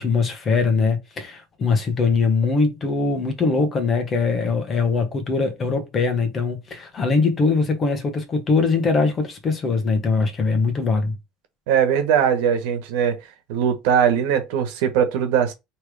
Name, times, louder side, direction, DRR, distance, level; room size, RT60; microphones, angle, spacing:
voice 1, 0.0-11.1, left 4 dB, 25° left, 1.1 m, -21 dB
voice 2, 11.7-13.2 13.5-15.5, right 8 dB, 90° right, 1.2 m, -20 dB
3.3 x 3.2 x 4.8 m
cardioid pair, 150°, 0 cm